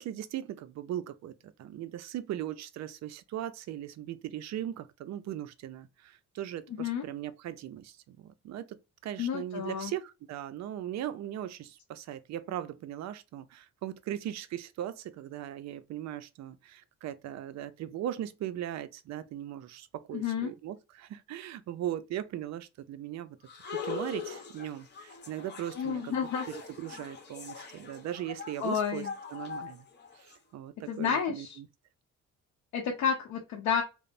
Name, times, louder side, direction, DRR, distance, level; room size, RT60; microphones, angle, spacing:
voice 1, 0.0-8.8 9.0-23.4 23.7-29.9 30.2-31.7, right 11 dB, 65° right, 0.4 m, -39 dB
voice 2, 9.2-9.9 20.1-20.5 25.8-26.5 28.6-29.1 30.9-31.6 32.7-33.8, left 7 dB, 80° left, 0.7 m, -30 dB
sound 1, 23.5-30.4, left 5 dB, 35° left, 0.8 m, -42 dB
2.9 x 2.0 x 2.5 m
cardioid pair, 90°, 30 cm